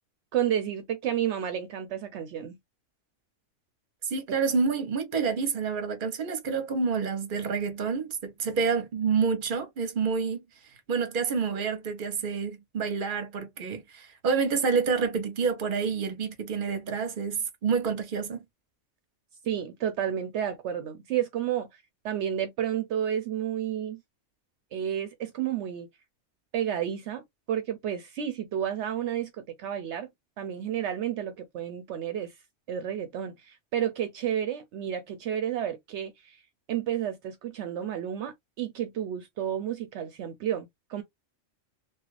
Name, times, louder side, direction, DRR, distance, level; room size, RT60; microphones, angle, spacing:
voice 1, 0.3-2.6 19.4-24.0 24.7-25.9 26.5-30.1 30.4-32.3 32.7-36.4 36.7-41.0, right 10 dB, 75° right, 0.8 m, -31 dB
voice 2, 4.0-10.4 10.9-18.4, right 5 dB, 50° right, 0.9 m, -28 dB
2.9 x 2.4 x 3.1 m
omnidirectional pair, 1.2 m